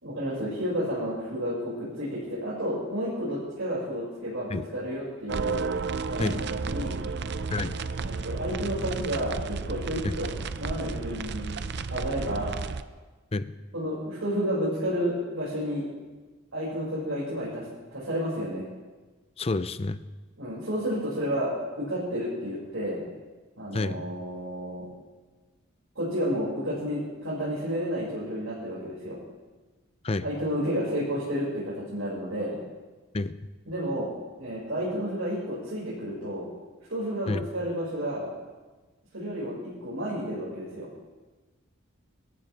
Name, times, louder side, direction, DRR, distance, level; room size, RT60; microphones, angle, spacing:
voice 1, 0.0-5.6 6.0-7.0 8.0-10.3 10.6-11.6 11.9-12.6 13.7-15.9 16.5-17.6 17.9-18.6 20.4-23.0 23.6-24.9 26.0-29.2 30.2-32.6 33.7-34.1 34.4-36.5 36.9-38.3 39.1-40.9, equal, 75° right, -8 dB, 5.6 m, -31 dB
sound 1, 5.3-12.8, right 4 dB, 55° right, 0.6 m, -32 dB
voice 2, 19.4-20.0 23.7-24.0 30.0-30.2 33.1-33.4 37.3-37.5, left 2 dB, 30° left, 13 dB, 0.5 m, -29 dB
25.5 x 14.0 x 3.4 m, 1.3 s
head